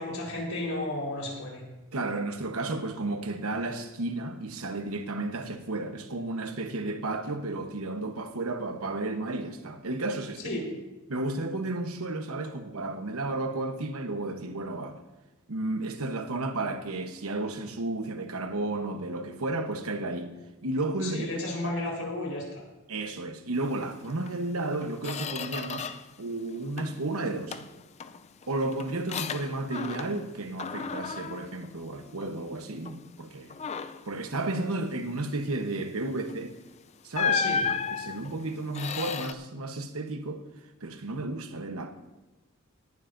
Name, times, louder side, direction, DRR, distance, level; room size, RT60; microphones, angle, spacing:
voice 1, 0.0-1.6 10.4-10.6 21.0-22.6 37.3-37.6, left 2 dB, 70° left, 4.2 m, -33 dB
voice 2, 1.9-10.6 11.1-15.0 15.5-20.3 20.6-21.3 22.9-25.9 26.2-27.6 28.5-33.6 34.1-36.6 37.0-37.6 37.9-40.4 40.8-41.9, right 2 dB, 75° right, 1.0 m, -32 dB
Squeak, 24.2-24.4 24.7-26.2 26.5-27.1 27.5-30.3 30.6-32.4 32.8-33.1 33.5-34.1 36.2-36.4 37.1-39.3, left 6 dB, 30° left, 0.4 m, -34 dB
18.0 x 11.5 x 2.6 m
head